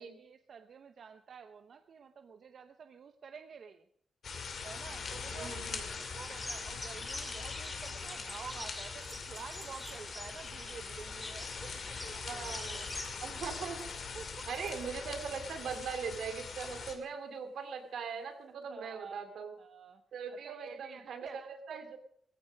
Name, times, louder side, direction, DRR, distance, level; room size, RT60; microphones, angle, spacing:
voice 1, 0.2-3.9 4.6-5.6 6.0-12.9 14.1-14.5 18.5-19.3 19.6-20.0 20.3-22.0, right 6 dB, 50° right, 8 dB, 0.7 m, -50 dB
sound 1, 4.2-17.0, left 5 dB, 50° left, 2.4 m, -42 dB
voice 2, 5.3-5.8 12.2-13.9 14.5-19.5 20.1-22.0, right 6 dB, 80° right, 7 dB, 2.5 m, -41 dB
sound 2, 6.2-14.6, left 1 dB, 10° left, 2.2 m, -47 dB
sound 3, 8.0-10.1 10.9-16.0 16.6-17.0 18.6-18.7, right 3 dB, 25° right, 3.7 m, -58 dB
18.5 x 15.0 x 5.2 m, 0.65 s
wide cardioid pair, 170°, 0 cm